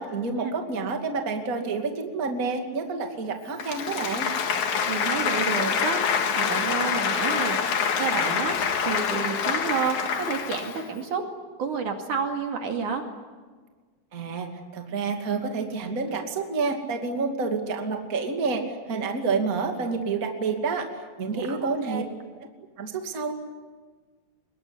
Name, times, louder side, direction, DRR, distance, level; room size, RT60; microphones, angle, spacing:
voice 1, 0.0-4.3 14.1-14.5 14.7-20.9 21.2-22.0 22.8-23.3, right 4 dB, 25° right, 3 dB, 2.4 m, -28 dB
Applause, 3.5-10.9, left 6 dB, 55° left, 3.0 m, -26 dB
voice 2, 4.9-7.6 8.0-8.6 8.8-11.2 11.6-13.0 21.3-22.1, right 5 dB, 60° right, 3 dB, 3.6 m, -30 dB
24.0 x 22.0 x 9.9 m, 1.4 s
omnidirectional pair, 4.2 m